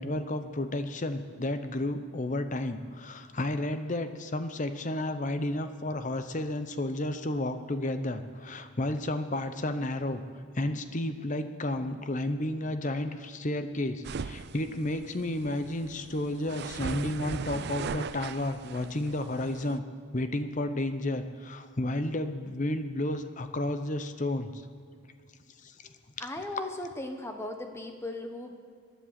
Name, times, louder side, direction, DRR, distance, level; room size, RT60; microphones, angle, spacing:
voice 1, 0.0-10.2 10.5-19.8 20.1-24.6 25.6-25.7 26.2-26.3, left 1 dB, 35° left, 9 dB, 0.7 m, -32 dB
sound 1, 14.0-19.8, right 5 dB, 50° right, 0.4 m, -39 dB
voice 2, 26.2-28.5, left 2 dB, 10° left, 5 dB, 1.1 m, -37 dB
19.0 x 11.5 x 5.9 m, 2.1 s
head